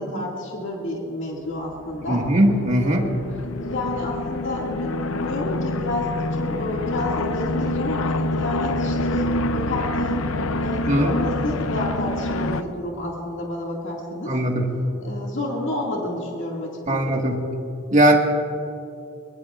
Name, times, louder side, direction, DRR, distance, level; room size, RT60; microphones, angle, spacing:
voice 1, 0.0-2.2 2.8-3.2 3.6-10.3 10.6-14.4 15.0-17.2, left 1 dB, 60° left, -2 dB, 2.2 m, -30 dB
sound 1, 1.6-12.6, left 2 dB, 80° left, 0.6 m, -27 dB
voice 2, 2.1-3.0 10.9-11.1 14.3-14.6 16.9-17.4 17.9-18.2, right 1 dB, 35° right, 1 dB, 1.7 m, -19 dB
23.0 x 22.0 x 2.5 m, 2.6 s
head